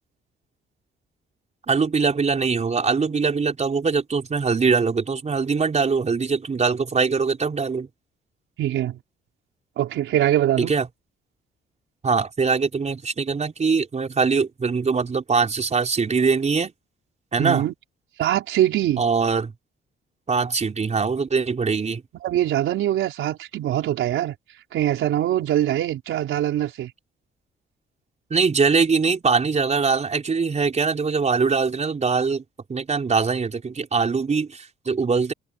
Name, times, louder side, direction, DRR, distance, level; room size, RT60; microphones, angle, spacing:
voice 1, 1.7-7.9 10.6-10.9 12.0-16.7 17.3-17.6 19.0-19.5 20.3-22.0 28.3-32.4 32.7-35.3, right 5 dB, 35° right, 4.8 m, -22 dB
voice 2, 8.6-9.0 9.8-10.7 17.4-17.7 18.2-19.0 22.2-24.3 24.7-26.9, right 12 dB, 80° right, 4.7 m, -23 dB
cardioid pair, 90°, 20 cm